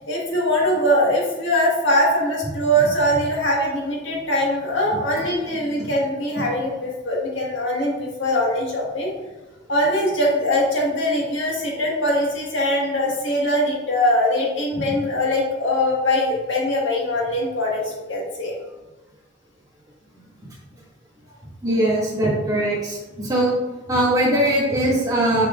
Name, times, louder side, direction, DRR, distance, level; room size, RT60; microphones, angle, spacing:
voice 1, 0.0-9.1 9.7-18.5, equal, 75° left, -3 dB, 1.7 m, -22 dB
voice 2, 21.6-23.5 23.9-25.5, right 1 dB, 20° right, -6 dB, 2.0 m, -20 dB
6.7 x 6.5 x 2.5 m, 1.2 s
head